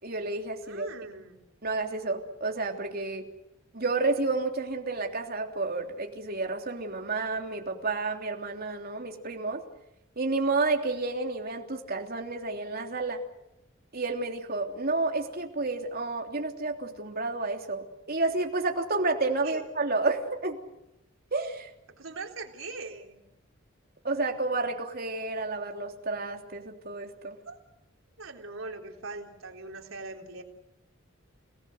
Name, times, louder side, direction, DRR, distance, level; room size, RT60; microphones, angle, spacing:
voice 1, 0.0-0.9 1.6-3.3 3.7-9.6 10.2-13.2 13.9-20.6 21.3-21.7 24.0-27.4, right 3 dB, 50° right, 2 dB, 3.2 m, -30 dB
voice 2, 0.7-1.4 19.4-19.6 21.9-23.3 27.5-27.6 28.2-30.4, right 3 dB, 85° right, 2 dB, 3.8 m, -41 dB
29.5 x 19.0 x 8.0 m, 0.89 s
head